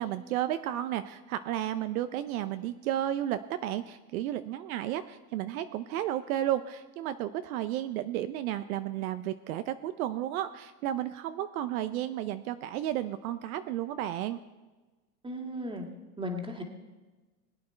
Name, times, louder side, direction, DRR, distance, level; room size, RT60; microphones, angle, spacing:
voice 1, 0.0-14.4, right 12 dB, 65° right, 11 dB, 0.7 m, -33 dB
voice 2, 15.2-15.8 16.2-16.6, equal, 10° right, 3 dB, 2.0 m, -35 dB
20.5 x 8.7 x 4.5 m, 1.2 s
hypercardioid pair, 115°, 47 cm